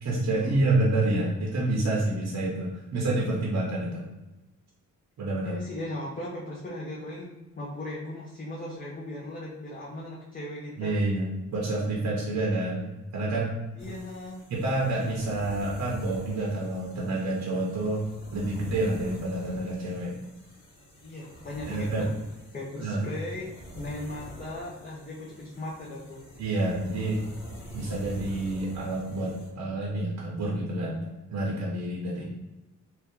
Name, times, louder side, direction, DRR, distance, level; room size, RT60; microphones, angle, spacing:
voice 1, 0.0-4.1 5.2-5.6 10.8-12.9 13.1-13.6 14.5-18.0 18.3-20.1 21.7-22.1 22.8-23.0 26.4-27.2 27.7-31.0 31.3-32.2, right 2 dB, 55° right, -4 dB, 0.7 m, -28 dB
voice 2, 5.4-11.0 13.8-14.4 21.0-22.1 22.5-23.5 23.7-26.2 32.2-32.3, left 1 dB, 25° left, -4 dB, 0.5 m, -38 dB
sound 1, 13.8-29.5, right 1 dB, 75° left, 1.4 m, -46 dB
2.7 x 2.2 x 3.5 m, 1.0 s
cardioid pair, 110°, 33 cm